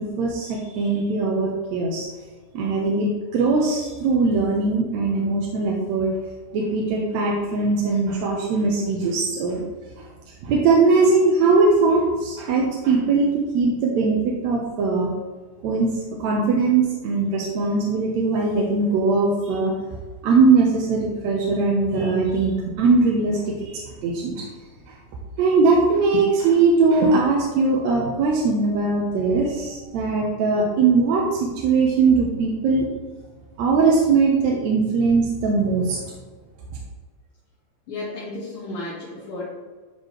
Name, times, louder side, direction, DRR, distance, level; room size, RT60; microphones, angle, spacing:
voice 1, 0.0-2.1 2.5-6.1 6.5-9.7 10.4-15.1 15.6-15.9 16.2-19.7 20.2-24.4 25.4-32.9 33.6-36.0, right 4 dB, 75° right, -2 dB, 2.0 m, -20 dB
voice 2, 37.9-39.5, left 2 dB, 55° left, -10 dB, 2.5 m, -33 dB
11.5 x 4.0 x 3.1 m, 1.4 s
omnidirectional pair, 3.4 m